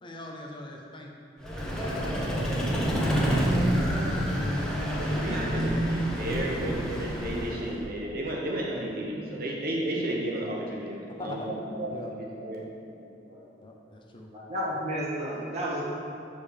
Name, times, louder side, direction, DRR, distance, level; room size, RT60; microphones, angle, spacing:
voice 1, 0.0-1.1 1.4-3.5 11.2-11.5 11.9-12.1 13.6-14.3, left 1 dB, 30° left, 0 dB, 0.6 m, -42 dB
Vehicle, 1.4-7.8, equal, 5° left, 1.0 m, -28 dB
voice 2, 5.0-12.6, right 1 dB, 55° right, -2 dB, 0.9 m, -33 dB
voice 3, 6.2-6.6 7.2-7.8 9.1-9.4 12.8-12.9 13.2-13.4 14.3-15.8, equal, 40° right, -7 dB, 1.9 m, -34 dB
5.4 x 5.1 x 6.6 m, 2.6 s
head